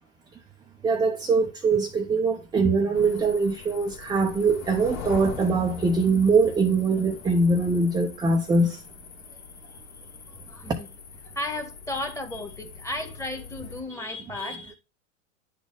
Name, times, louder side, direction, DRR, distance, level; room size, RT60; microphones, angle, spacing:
voice 1, 0.8-8.8 10.7-10.8 13.9-14.7, right 3 dB, 10° right, 0.6 m, -23 dB
sound 1, 2.9-13.8, left 6 dB, 50° left, 2.1 m, -42 dB
voice 2, 10.5-10.9 11.3-14.7, left 1 dB, 5° left, 1.5 m, -34 dB
9.8 x 4.0 x 3.4 m
hypercardioid pair, 105°, 40 cm